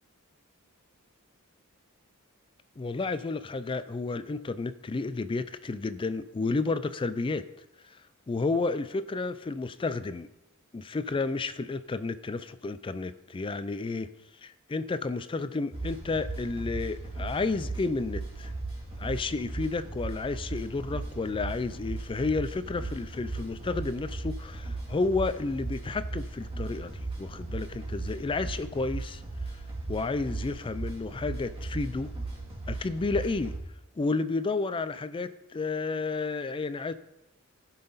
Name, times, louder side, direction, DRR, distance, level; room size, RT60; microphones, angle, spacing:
voice 1, 2.8-7.4 7.9-8.0 8.3-10.3 10.7-14.1 14.4-18.5 19.0-29.2 29.9-32.1 32.7-33.5 34.0-36.9, left 3 dB, 25° left, 13 dB, 0.4 m, -31 dB
sound 1, 15.7-33.6, right 2 dB, 25° right, 2.1 m, -37 dB
17.0 x 5.8 x 4.0 m, 0.89 s
head